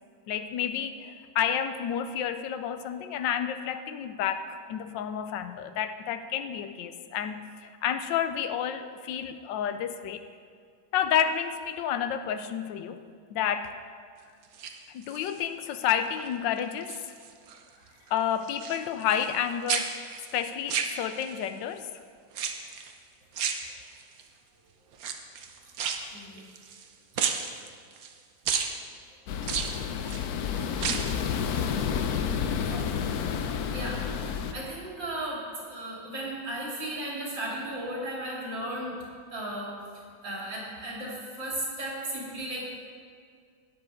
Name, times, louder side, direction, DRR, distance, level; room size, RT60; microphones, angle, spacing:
voice 1, 0.3-10.2 10.9-13.0 13.3-13.7 14.9-17.0 18.1-19.9 20.3-21.9, left 9 dB, 85° left, 10 dB, 1.3 m, -30 dB
sound 1, 14.4-15.4 15.9-16.3 16.6-17.6 17.9-19.4 19.7-21.5 22.3-22.9 23.3-24.2 24.9-26.9 27.2-28.1 28.5-28.7 29.4-30.2 30.7-31.2 31.5-31.6, right 7 dB, 60° right, 1.1 m, -32 dB
voice 2, 26.1-26.5 30.9-31.2 32.6-33.1 33.4-39.0 39.3-42.7, right 1 dB, 75° right, -5 dB, 3.6 m, -36 dB
sound 2, 29.3-34.5, left 7 dB, 65° left, 1.0 m, -30 dB
13.0 x 10.0 x 3.7 m, 2.2 s
omnidirectional pair, 2.0 m